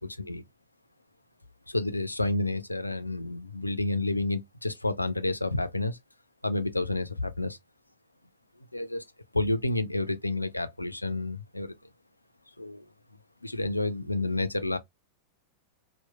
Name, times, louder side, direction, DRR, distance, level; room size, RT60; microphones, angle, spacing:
voice 1, 1.7-6.0 6.4-7.6 8.7-9.0 9.3-11.8 12.6-12.9 13.4-14.8, left 2 dB, 85° left, 0.3 m, -30 dB
2.8 x 2.1 x 2.3 m
figure-of-eight pair, 90°, 0 cm